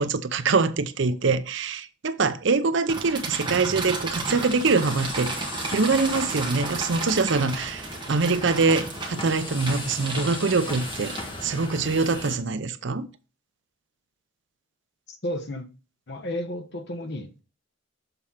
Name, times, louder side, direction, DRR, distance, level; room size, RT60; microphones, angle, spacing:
voice 1, 0.0-11.1 11.4-13.1, right 4 dB, 60° right, 0.6 m, -24 dB
sound 1, 2.9-11.6, right 3 dB, 20° right, 1.5 m, -34 dB
sound 2, 4.1-12.4, left 1 dB, 25° left, 1.2 m, -37 dB
voice 2, 15.1-15.7 16.1-17.4, left 1 dB, 50° left, 1.0 m, -32 dB
6.9 x 4.2 x 5.5 m
head